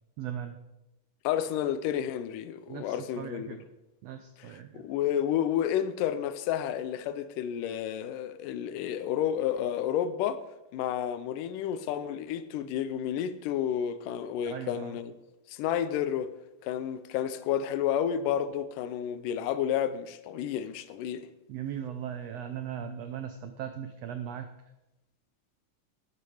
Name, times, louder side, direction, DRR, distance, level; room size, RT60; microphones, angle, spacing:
voice 1, 0.2-0.6 2.7-3.6 4.0-4.8 14.4-15.0 21.5-24.5, right 9 dB, 85° right, 1.4 m, -38 dB
voice 2, 1.2-3.6 4.4-10.4 10.7-15.1 15.5-16.3 16.6-21.3, left 10 dB, 85° left, 2.3 m, -31 dB
12.5 x 9.8 x 5.0 m
omnidirectional pair, 3.7 m